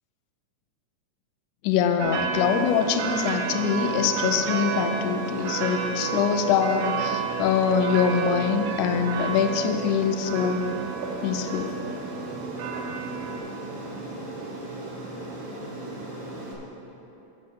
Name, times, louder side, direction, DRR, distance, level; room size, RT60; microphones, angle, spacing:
voice 1, 1.6-10.7 11.2-11.8, left 7 dB, 80° left, 7 dB, 2.0 m, -24 dB
sound 1, 2.0-13.4, right 6 dB, 75° right, 1.6 m, -32 dB
Aircraft, 2.3-16.5, right 2 dB, 55° right, 1.8 m, -37 dB
7.6 x 6.9 x 7.4 m, 3.0 s
omnidirectional pair, 3.6 m